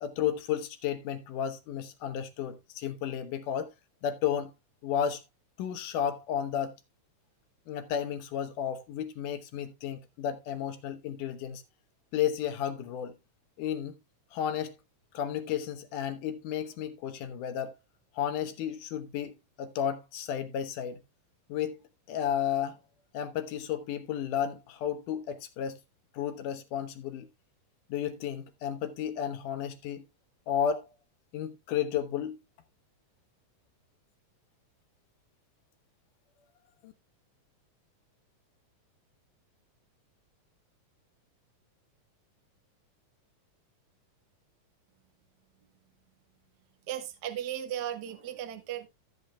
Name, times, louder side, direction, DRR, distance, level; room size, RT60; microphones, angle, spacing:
voice 1, 0.0-3.7 4.0-4.5 4.8-5.2 5.6-6.8 7.7-11.6 12.1-13.1 13.6-13.9 14.3-14.8 15.1-17.8 18.2-21.0 21.5-21.8 22.1-22.8 23.1-25.8 26.1-27.3 27.9-30.0 30.5-30.9 31.3-32.4 36.8-36.9, left 9 dB, 75° left, 2.5 m, -32 dB
voice 2, 46.9-48.9, right 11 dB, 75° right, 0.9 m, -36 dB
15.0 x 7.9 x 2.2 m
omnidirectional pair, 3.8 m